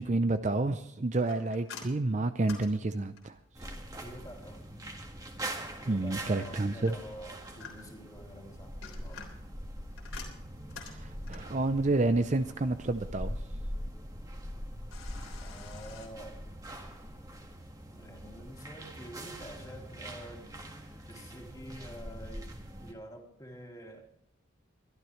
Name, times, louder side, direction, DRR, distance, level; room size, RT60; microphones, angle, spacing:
voice 1, 0.0-3.4 5.9-6.9 10.9-13.4, right 2 dB, 35° right, 10 dB, 0.5 m, -29 dB
sound 1, 1.3-3.5 6.9-8.1 8.6-11.6 14.9-16.1, left 5 dB, 75° left, 3.5 m, -48 dB
sound 2, 3.5-22.9, right 1 dB, 15° right, 1.7 m, -43 dB
voice 2, 4.0-4.7 5.8-9.5 15.4-16.4 17.9-20.5 21.0-24.0, right 1 dB, 15° left, 1 dB, 2.6 m, -48 dB
23.0 x 12.5 x 3.2 m, 0.75 s
head